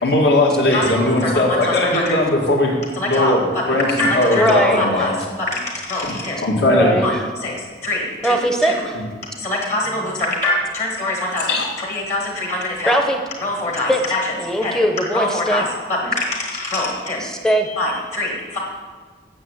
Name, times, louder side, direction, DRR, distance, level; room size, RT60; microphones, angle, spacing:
voice 1, 0.0-2.8 3.1-3.4 3.7-5.1 6.0-6.1 6.4-6.9 11.5-11.7, left 1 dB, 65° left, -1 dB, 2.2 m, -18 dB
voice 2, 0.7-2.2 2.9-6.4 7.0-7.1 7.4-8.8 9.4-13.0 13.4-14.3 14.6-14.8 15.1-17.2 17.8-18.6, left 1 dB, 40° left, -1 dB, 1.8 m, -24 dB
voice 3, 4.3-5.1 6.6-7.2 8.2-9.0 12.8-13.2 13.9-14.0 14.4-15.6 17.2-17.8, right 1 dB, 5° left, 4 dB, 0.8 m, -20 dB
8.7 x 7.2 x 8.0 m, 1.6 s
head